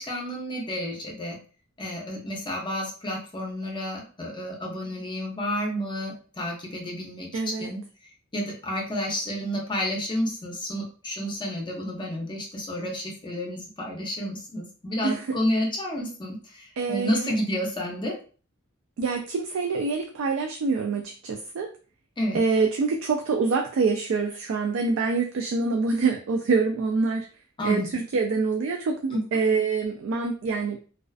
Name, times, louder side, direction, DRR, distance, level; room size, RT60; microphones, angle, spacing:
voice 1, 0.0-1.4 1.8-7.3 7.6-7.8 8.3-18.2 22.2-22.4 27.6-28.0 29.1-29.2, equal, 25° left, -1 dB, 0.6 m, -30 dB
voice 2, 7.3-7.7 15.0-15.4 16.8-17.3 19.0-21.7 22.3-27.3 27.6-30.8, right 4 dB, 70° right, 3 dB, 0.3 m, -26 dB
2.3 x 2.3 x 2.3 m, 0.38 s
head